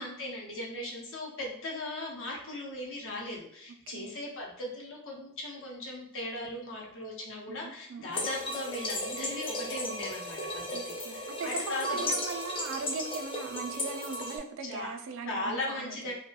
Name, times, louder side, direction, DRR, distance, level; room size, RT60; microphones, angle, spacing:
voice 1, 0.0-12.1 14.6-14.9 15.2-16.1, left 1 dB, 60° left, -2 dB, 0.8 m, -38 dB
voice 2, 7.5-8.3 10.7-16.1, right 4 dB, 60° right, 5 dB, 0.4 m, -39 dB
sound 1, 8.1-14.4, left 1 dB, 25° left, 0.4 m, -35 dB
2.6 x 2.2 x 2.5 m, 0.73 s
head